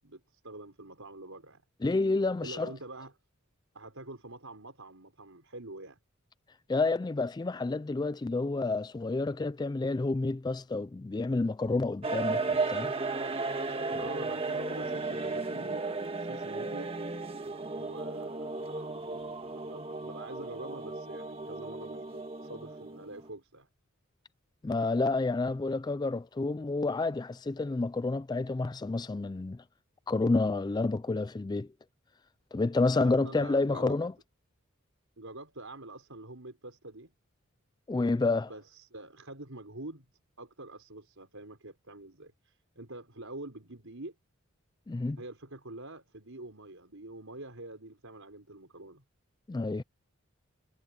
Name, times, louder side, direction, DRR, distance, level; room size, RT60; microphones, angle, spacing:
voice 1, 0.0-1.6 2.4-3.1 3.7-6.0 13.7-16.9 17.7-23.7 33.0-34.0 35.2-37.1 38.4-40.0 40.4-44.1 45.2-49.0, right 2 dB, 75° right, 4.8 m, -46 dB
voice 2, 1.8-2.7 6.7-12.9 24.6-29.6 30.1-31.7 32.5-34.1 37.9-38.5 44.9-45.2 49.5-49.8, left 3 dB, 20° left, 0.3 m, -29 dB
sound 1, 12.0-23.3, right 3 dB, 25° right, 1.6 m, -35 dB
head